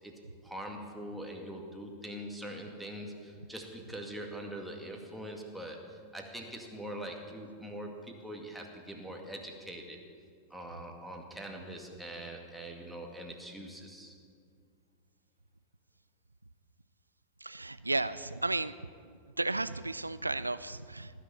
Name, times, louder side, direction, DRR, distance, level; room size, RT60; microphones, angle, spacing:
voice 1, 0.0-10.0 10.5-14.2, right 1 dB, ahead, 1 dB, 2.1 m, -43 dB
voice 2, 17.4-18.8 19.1-21.2, right 2 dB, 85° right, 16 dB, 0.3 m, -34 dB
18.5 x 6.8 x 8.9 m, 2.1 s
figure-of-eight pair, 90°, 0 cm